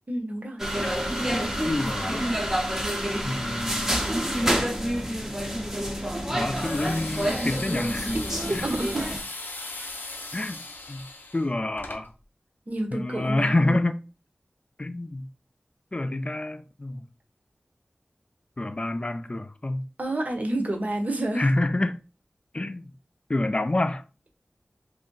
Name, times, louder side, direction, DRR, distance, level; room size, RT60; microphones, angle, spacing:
voice 1, 0.1-0.6 8.5-9.1 9.8-9.9 12.7-13.8 20.0-21.4, right 1 dB, 50° right, 0.7 m, -29 dB
sound 1, 0.6-9.2, equal, 10° right, 0.6 m, -28 dB
voice 2, 1.7-2.4 3.2-3.9 6.3-8.1 8.5-8.7 10.3-10.6 10.9-11.1 11.3-12.1 12.9-14.0 14.8-15.3 15.9-17.0 18.6-19.9 21.4-22.0 22.5-22.9 23.3-24.0, left 2 dB, 30° left, 0.3 m, -27 dB
sound 2, 6.5-12.0, left 2 dB, 80° left, 0.6 m, -38 dB
2.5 x 2.1 x 3.7 m
wide cardioid pair, 45°, 3 cm